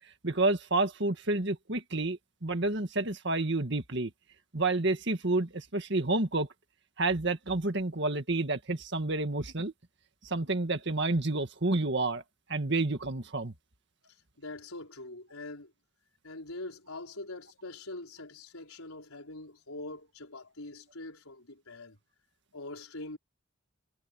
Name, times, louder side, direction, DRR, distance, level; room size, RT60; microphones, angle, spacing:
voice 1, 0.2-4.1 4.5-6.5 7.0-9.7 10.2-12.2 12.5-13.5, right 2 dB, 55° right, 1.9 m, -29 dB
voice 2, 14.4-15.7 16.2-22.0 22.5-23.2, left 2 dB, 85° left, 5.1 m, -43 dB
head